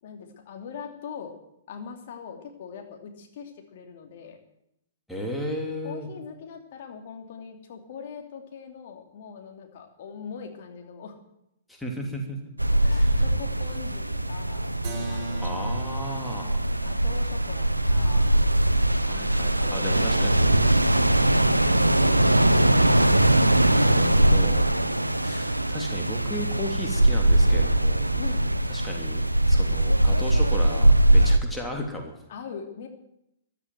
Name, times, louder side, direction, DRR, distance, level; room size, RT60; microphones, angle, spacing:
voice 1, 0.0-1.3 1.7-4.4 5.8-11.1 12.8-15.7 16.8-18.2 19.4-23.1 28.2-28.4 32.3-32.9, left 6 dB, 45° left, 3 dB, 2.8 m, -42 dB
voice 2, 5.1-6.1 11.7-12.4 12.9-13.2 15.4-16.6 19.0-20.6 23.7-24.7 25.2-28.1 28.7-32.2, equal, 5° left, 0 dB, 3.1 m, -35 dB
sound 1, 12.6-31.4, right 1 dB, 85° right, 0.8 m, -21 dB
Keyboard (musical), 14.8-20.4, right 2 dB, 30° right, 6.7 m, -42 dB
15.0 x 12.0 x 7.9 m, 0.80 s
figure-of-eight pair, 110°, 0 cm